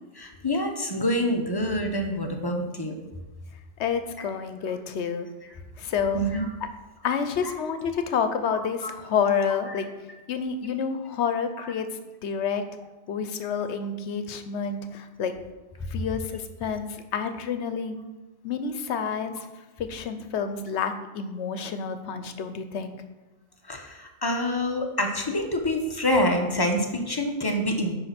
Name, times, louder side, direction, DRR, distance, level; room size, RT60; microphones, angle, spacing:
voice 1, 0.2-2.9 4.2-4.3 6.1-6.5 7.4-7.5 8.5-8.9 9.6-9.9 11.5-11.7 23.6-27.9, left 1 dB, 25° left, 3 dB, 0.7 m, -27 dB
voice 2, 3.8-5.3 5.8-6.2 7.0-9.9 10.3-11.9 12.2-12.6 13.1-15.3 15.9-18.0 18.4-19.5 19.9-22.9, left 6 dB, 75° left, 9 dB, 1.0 m, -29 dB
9.6 x 3.3 x 5.8 m, 1.2 s
omnidirectional pair, 1.2 m